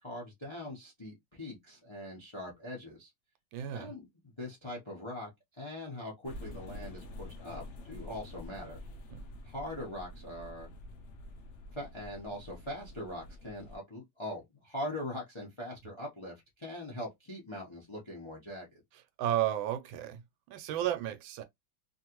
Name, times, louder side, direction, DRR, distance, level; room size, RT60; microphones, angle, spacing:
voice 1, 0.0-3.1 3.7-8.8 9.4-10.7 11.7-18.8, left 1 dB, 30° left, 0.5 m, -42 dB
voice 2, 3.5-3.9 9.1-9.2 19.2-20.2 20.5-21.4, right 11 dB, 85° right, 1.4 m, -33 dB
sound 1, 6.2-13.8, left 1 dB, 80° left, 0.6 m, -47 dB
3.1 x 2.6 x 2.9 m
omnidirectional pair, 2.1 m